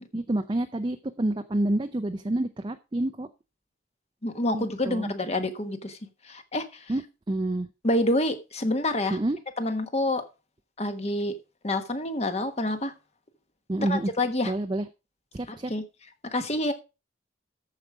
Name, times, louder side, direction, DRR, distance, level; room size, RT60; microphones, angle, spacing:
voice 1, 0.1-3.3 4.5-5.1 6.9-7.0 7.3-7.7 9.1-9.4 13.7-14.1 14.4-14.9 15.3-15.7, right 1 dB, 25° right, 0.5 m, -28 dB
voice 2, 4.2-6.0 6.2-6.9 7.8-9.2 9.6-10.2 10.8-11.4 11.6-12.9 13.8-14.5 15.5-15.8 16.3-16.7, left 1 dB, 35° left, 1.2 m, -27 dB
13.5 x 5.0 x 4.9 m
head